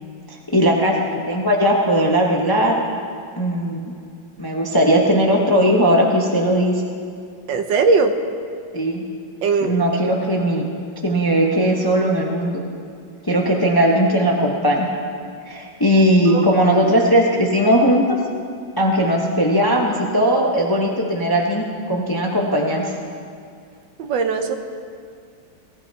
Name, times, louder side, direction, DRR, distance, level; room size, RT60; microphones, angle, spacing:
voice 1, 0.3-2.8 3.4-3.8 4.4-6.8 8.7-9.0 9.6-10.6 11.0-12.6 13.2-14.9 15.5-18.2 18.8-22.9, equal, 15° left, -1 dB, 0.8 m, -18 dB
voice 2, 7.5-8.1 9.4-10.1 16.3-16.4 24.0-24.6, right 4 dB, 70° right, 6 dB, 1.5 m, -19 dB
19.0 x 15.0 x 2.9 m, 2.3 s
omnidirectional pair, 2.2 m